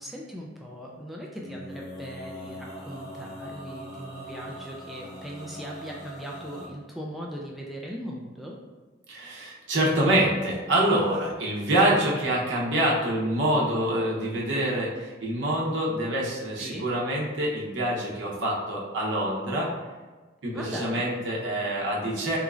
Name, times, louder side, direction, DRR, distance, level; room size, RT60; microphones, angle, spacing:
voice 1, 0.0-8.6 16.6-16.9 20.4-21.1, equal, ahead, -3 dB, 0.3 m, -39 dB
Male singing, 1.4-6.7, equal, 20° left, 1.2 m, -41 dB
voice 2, 9.1-19.7 20.4-22.4, right 1 dB, 70° right, -4 dB, 0.8 m, -26 dB
3.5 x 3.0 x 2.4 m, 1.3 s
head